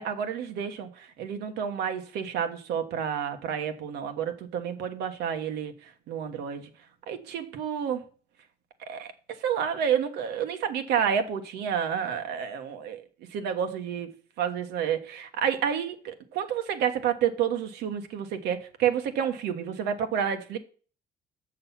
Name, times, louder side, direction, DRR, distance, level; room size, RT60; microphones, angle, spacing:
voice 1, 0.0-6.7 7.1-8.0 8.9-9.1 9.4-13.0 13.3-14.1 14.4-20.6, right 8 dB, 80° right, 1.3 m, -29 dB
6.9 x 6.5 x 5.7 m
cardioid pair, 110°, 17 cm